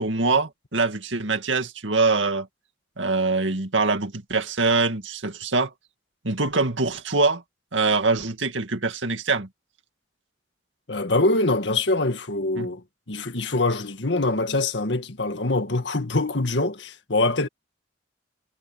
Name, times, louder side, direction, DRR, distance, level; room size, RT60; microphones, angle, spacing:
voice 1, 0.0-2.5 3.0-5.7 6.2-7.4 7.7-9.5 12.6-12.7, right 3 dB, 90° right, 2.3 m, -23 dB
voice 2, 10.9-17.5, left 2 dB, 75° left, 1.8 m, -24 dB
head